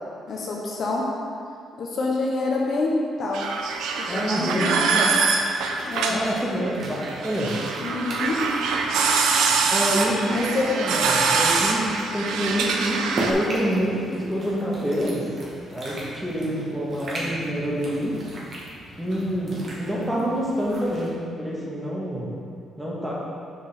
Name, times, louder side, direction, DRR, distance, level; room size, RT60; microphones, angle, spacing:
voice 1, 0.3-1.1 1.8-2.9 3.2-3.5 4.0-4.8 5.8-6.2 7.8-8.4 10.3-10.7, left 3 dB, 60° left, -2 dB, 1.0 m, -27 dB
sound 1, 3.3-13.3, right 4 dB, 85° right, 0.5 m, -24 dB
voice 2, 4.1-5.2 6.1-7.6 9.7-15.3 15.7-18.2 19.0-22.4 22.8-23.1, equal, 5° right, -6 dB, 1.6 m, -27 dB
sound 2, 5.2-21.1, right 1 dB, 50° right, 1.7 m, -38 dB
6.8 x 5.1 x 3.7 m, 2.3 s
cardioid pair, 90°, 0 cm